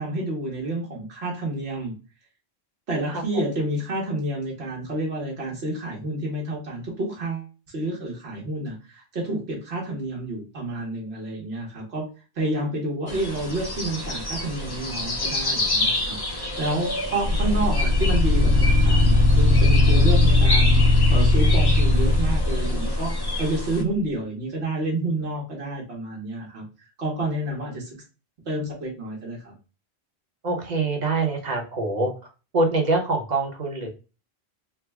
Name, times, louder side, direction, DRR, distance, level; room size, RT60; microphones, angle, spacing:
voice 1, 0.0-1.9 2.9-7.5 7.7-12.0 12.3-26.6 27.0-28.0 28.5-29.5, right 1 dB, 85° right, -3 dB, 1.3 m, -29 dB
sound 1, 13.1-23.8, left 2 dB, 35° left, 0.4 m, -29 dB
sound 2, 17.2-23.4, left 2 dB, 60° right, 1.4 m, -18 dB
voice 2, 30.4-32.1 32.5-33.9, right 3 dB, 45° right, 2 dB, 0.9 m, -24 dB
3.4 x 2.1 x 3.3 m, 0.32 s
omnidirectional pair, 1.1 m